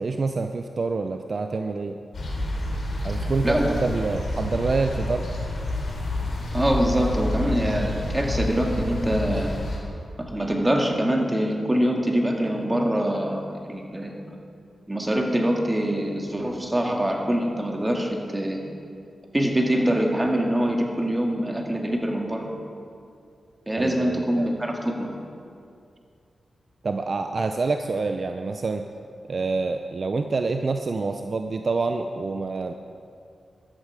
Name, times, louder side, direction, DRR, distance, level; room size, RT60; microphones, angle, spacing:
voice 1, 0.0-2.0 3.0-5.3 23.8-24.5 26.8-28.9 29.3-32.7, right 3 dB, 50° right, 6 dB, 0.6 m, -27 dB
sound 1, 2.1-9.8, left 1 dB, 65° left, 4.1 m, -29 dB
voice 2, 3.4-3.8 6.5-9.5 10.2-14.2 14.9-18.6 19.3-22.5 23.7-25.1, right 1 dB, 20° right, 1 dB, 2.1 m, -24 dB
14.0 x 12.5 x 4.9 m, 2.4 s
cardioid pair, 75°, 0 cm